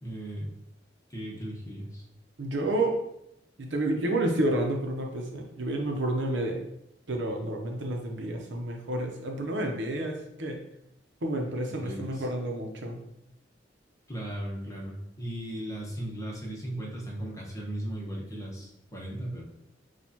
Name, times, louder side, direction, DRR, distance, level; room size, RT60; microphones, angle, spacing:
voice 1, 0.0-0.5 1.1-2.0 11.8-12.3 14.1-19.4, right 1 dB, 20° left, -3 dB, 1.0 m, -37 dB
voice 2, 2.4-2.9 3.6-6.6 7.1-10.6 11.2-13.0, right 1 dB, 80° right, 2 dB, 0.7 m, -30 dB
6.2 x 2.4 x 2.9 m, 0.80 s
head